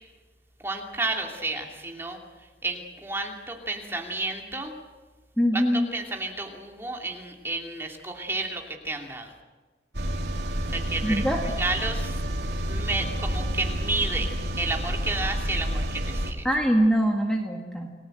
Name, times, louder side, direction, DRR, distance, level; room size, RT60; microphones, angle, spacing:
voice 1, 0.6-2.2 2.6-4.7 5.5-5.6 5.9-9.3 10.7-11.2 11.6-12.2 12.7-16.4, right 2 dB, 15° right, 1 dB, 2.7 m, -31 dB
voice 2, 5.4-5.9 11.0-11.4 16.4-17.9, equal, 5° left, 0 dB, 1.9 m, -23 dB
sound 1, 9.9-16.3, equal, 75° right, 2.9 m, -29 dB
30.0 x 19.0 x 7.9 m, 1.3 s
head